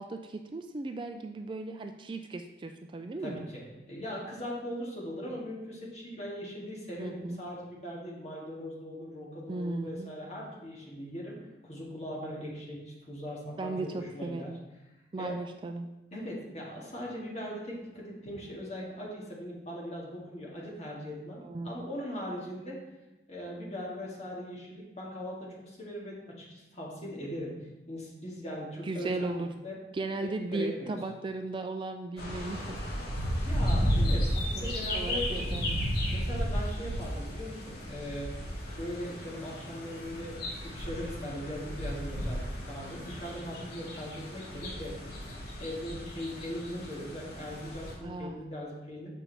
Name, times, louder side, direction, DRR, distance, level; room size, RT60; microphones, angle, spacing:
voice 1, 0.0-3.5 7.0-7.4 9.5-10.1 13.6-14.6 15.1-15.9 21.4-21.9 28.8-29.5 29.9-32.8 34.6-35.8 48.0-48.4, right 2 dB, 25° right, 6 dB, 0.3 m, -36 dB
voice 2, 3.2-11.4 11.6-14.5 15.2-15.4 16.1-22.8 23.3-27.5 27.9-29.3 29.6-29.8 30.2-31.0 33.3-35.6 36.1-38.3 38.8-49.1, equal, 35° left, -4 dB, 1.9 m, -40 dB
sound 1, 32.2-47.9, equal, 55° left, 2.0 m, -34 dB
7.4 x 5.5 x 4.1 m, 1.0 s
head